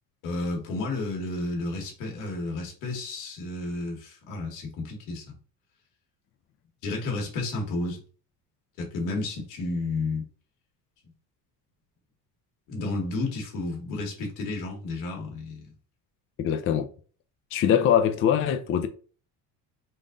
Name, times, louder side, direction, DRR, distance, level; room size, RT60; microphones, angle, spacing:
voice 1, 0.2-5.4 6.8-8.0 8.8-10.3 12.7-15.7, left 2 dB, 85° left, 1.7 m, -32 dB
voice 2, 16.4-16.9 17.5-18.9, left 9 dB, 35° left, 0.4 m, -22 dB
3.8 x 2.5 x 3.7 m
cardioid pair, 130°, 41 cm